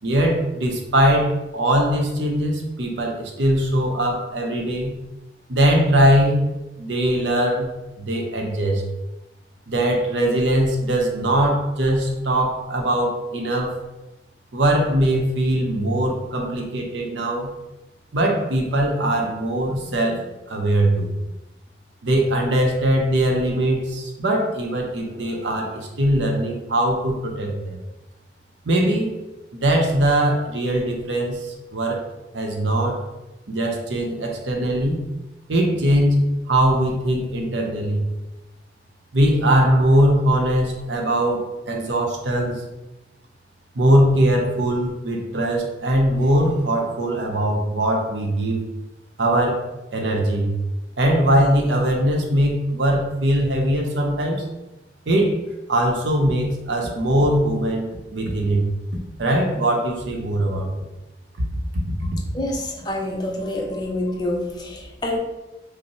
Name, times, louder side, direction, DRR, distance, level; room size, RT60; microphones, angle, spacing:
voice 1, 0.0-4.9 5.5-6.4 6.8-7.7 8.0-8.8 9.7-13.8 14.5-17.5 18.1-21.1 22.0-27.8 28.7-29.1 29.5-32.0 32.3-33.0 33.5-35.0 35.5-38.0 39.1-42.6 43.7-48.6 49.2-49.6 49.9-50.5 51.0-54.4 55.1-55.4 55.7-58.6 59.2-60.9, right 1 dB, 90° right, 1 dB, 0.7 m, -21 dB
voice 2, 62.3-65.2, left 1 dB, 25° left, 0 dB, 0.5 m, -27 dB
5.3 x 2.0 x 3.0 m, 1.0 s
head